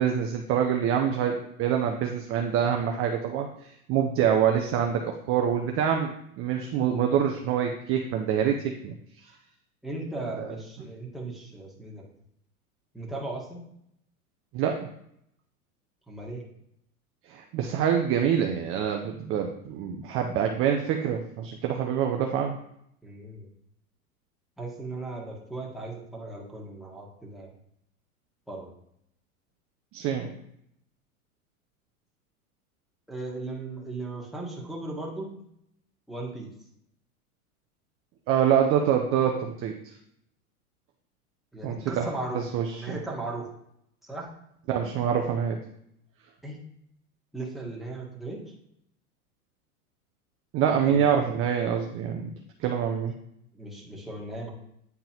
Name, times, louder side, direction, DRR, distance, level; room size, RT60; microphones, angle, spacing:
voice 1, 0.0-6.1 6.4-8.6 8.8-8.9 10.3-10.5 14.5-14.9 17.3-22.6 29.9-30.4 38.3-39.7 41.6-42.1 42.3-43.0 44.7-45.6 50.5-52.3 52.6-53.1, right 8 dB, 30° right, 3 dB, 0.6 m, -26 dB
voice 2, 9.8-12.0 12.9-13.7 16.1-16.4 23.0-23.5 24.6-27.5 28.5-28.7 33.1-35.3 36.1-36.5 41.5-42.4 42.7-43.5 44.0-44.3 46.4-46.6 47.3-48.4 50.8-51.1 53.5-54.5, right 2 dB, ahead, -3 dB, 1.6 m, -37 dB
9.3 x 3.7 x 2.9 m, 0.75 s
hypercardioid pair, 95°, 44 cm